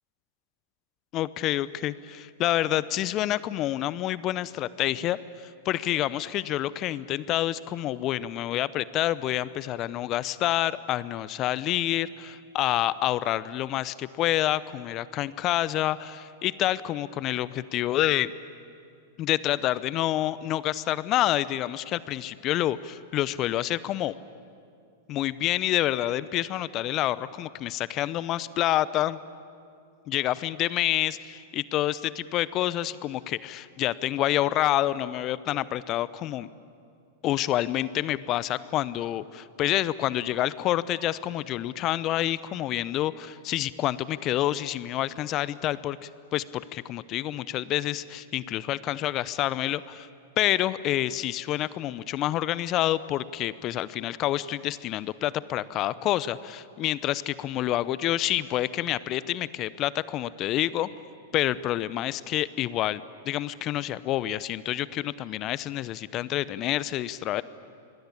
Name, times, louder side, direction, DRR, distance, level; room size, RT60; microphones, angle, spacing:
voice 1, 1.1-5.2 5.6-18.3 19.2-24.1 25.1-29.2 30.1-36.5 37.2-50.1 50.4-60.9 61.3-67.4, left 14 dB, 40° left, 18 dB, 0.8 m, -28 dB
26.5 x 21.5 x 8.7 m, 2.4 s
hypercardioid pair, 100°, 0 cm